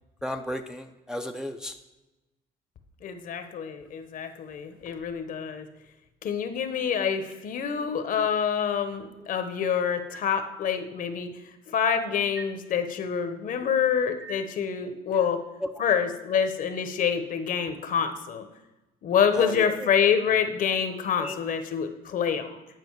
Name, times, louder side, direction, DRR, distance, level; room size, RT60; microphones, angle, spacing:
voice 1, 0.2-1.8 8.2-8.3 9.2-9.3 12.4-12.5 14.2-14.4 15.1-15.2 15.6-15.7 19.3-20.1 21.2-21.4, left 1 dB, 5° right, 4 dB, 0.5 m, -34 dB
voice 2, 3.0-5.7 6.2-11.3 11.7-15.4 15.8-18.4 19.0-22.6, left 7 dB, 55° left, 8 dB, 0.9 m, -27 dB
9.3 x 5.0 x 4.6 m, 1.0 s
cardioid pair, 110°, 17 cm